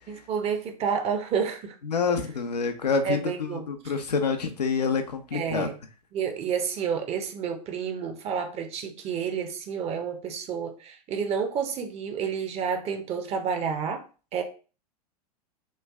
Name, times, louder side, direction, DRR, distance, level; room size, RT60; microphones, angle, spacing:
voice 1, 0.1-1.8 3.0-3.6 5.3-5.7 6.1-14.0 14.3-14.4, right 6 dB, 30° right, 6 dB, 0.6 m, -30 dB
voice 2, 1.8-3.2 3.5-5.7, left 5 dB, 90° left, 6 dB, 0.6 m, -27 dB
3.2 x 2.3 x 3.4 m, 0.37 s
hypercardioid pair, 100°, 20 cm